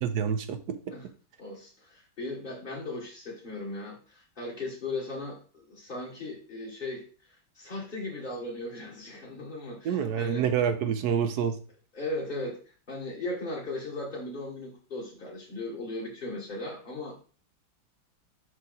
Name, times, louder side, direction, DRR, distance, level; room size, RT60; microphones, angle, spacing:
voice 1, 0.0-0.6 9.8-11.6, right 8 dB, 70° right, 9 dB, 1.2 m, -27 dB
voice 2, 1.4-10.4 11.9-17.1, left 2 dB, 30° left, -5 dB, 1.5 m, -37 dB
5.7 x 4.8 x 3.9 m, 0.40 s
omnidirectional pair, 1.9 m